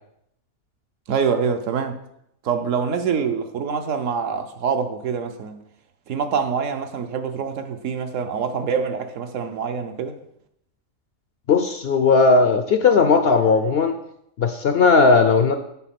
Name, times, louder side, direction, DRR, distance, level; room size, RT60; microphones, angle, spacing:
voice 1, 1.1-2.0 2.4-5.6 6.1-10.2, right 6 dB, 70° right, 1.1 m, -25 dB
voice 2, 11.5-14.0 14.4-15.6, left 4 dB, 60° left, 0.6 m, -17 dB
8.2 x 4.2 x 5.9 m
omnidirectional pair, 1.4 m